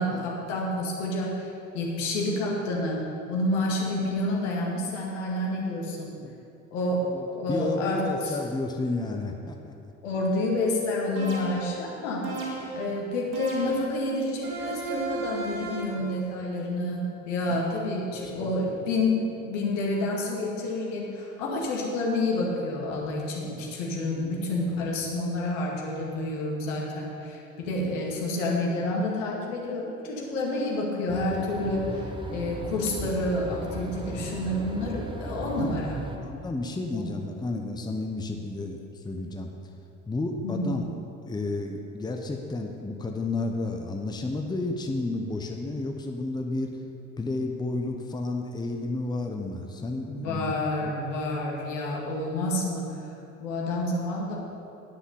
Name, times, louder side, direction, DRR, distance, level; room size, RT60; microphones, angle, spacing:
voice 1, 0.0-6.1 6.7-7.1 7.3-8.4 10.0-12.3 12.7-36.0 36.9-37.1 40.4-40.8 50.1-52.9 53.4-54.4, left 1 dB, 65° left, -2 dB, 2.1 m, -29 dB
voice 2, 7.1-9.7 15.9-16.4 17.5-17.6 18.4-18.7 27.7-27.8 34.3-34.4 35.6-35.7 36.2-39.5 40.1-40.8 41.3-46.8 47.2-50.9, left 2 dB, 10° left, 3 dB, 0.9 m, -32 dB
sound 1, 11.2-11.8 12.2-12.9 13.3-14.0 14.4-16.0, right 3 dB, 50° right, 2.7 m, -34 dB
sound 2, 31.1-36.2, right 1 dB, 10° right, 1.2 m, -37 dB
10.0 x 9.7 x 5.7 m, 2.7 s
figure-of-eight pair, 55°, 40 cm